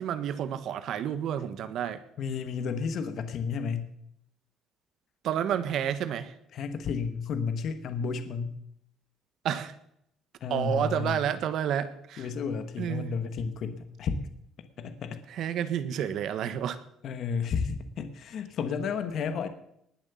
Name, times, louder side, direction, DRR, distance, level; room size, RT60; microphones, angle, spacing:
voice 1, 0.0-2.0 5.2-6.3 9.4-9.7 10.5-12.3 12.8-13.1 15.3-16.8, right 9 dB, 60° right, 13 dB, 1.2 m, -30 dB
voice 2, 2.2-3.9 6.5-8.6 10.4-11.3 12.2-14.3 14.8-15.2 17.0-19.5, left 5 dB, 50° left, 9 dB, 1.3 m, -32 dB
19.5 x 7.4 x 7.0 m, 0.74 s
cardioid pair, 140°, 0 cm